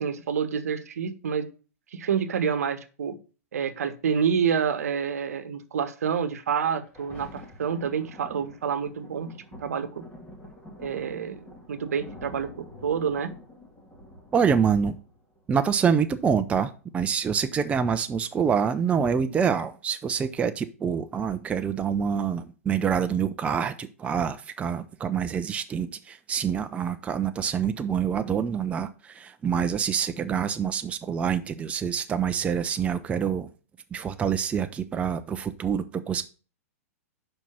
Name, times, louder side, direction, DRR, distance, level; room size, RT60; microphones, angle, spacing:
voice 1, 0.0-1.5 1.9-3.2 3.5-10.0 10.8-13.3, right 7 dB, 80° right, 0.9 m, -28 dB
Thunder, 6.6-17.6 18.3-18.4, left 1 dB, 15° left, 2.0 m, -48 dB
voice 2, 14.3-15.0 15.5-33.5 33.9-36.3, right 7 dB, 15° right, 0.4 m, -26 dB
5.4 x 4.5 x 5.9 m
hypercardioid pair, 120°, 8 cm